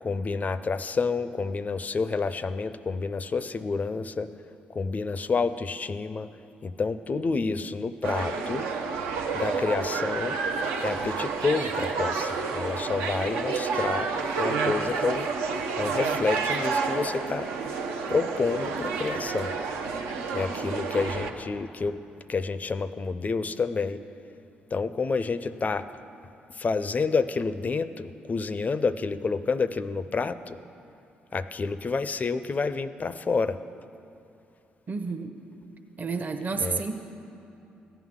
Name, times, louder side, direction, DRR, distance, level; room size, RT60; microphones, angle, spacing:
voice 1, 0.0-4.3 4.7-6.3 6.6-8.7 9.3-10.4 10.8-14.1 14.4-15.3 15.8-17.5 18.1-19.6 20.3-22.0 22.3-24.0 24.7-25.9 26.5-30.6 31.3-33.6 36.5-36.8, left 4 dB, 40° left, 13 dB, 0.4 m, -29 dB
sound 1, 8.0-21.3, right 4 dB, 80° right, 0.6 m, -29 dB
voice 2, 34.9-35.3 36.0-36.9, right 4 dB, 40° right, 5 dB, 0.8 m, -30 dB
15.0 x 9.3 x 3.7 m, 2.8 s
hypercardioid pair, 50°, 4 cm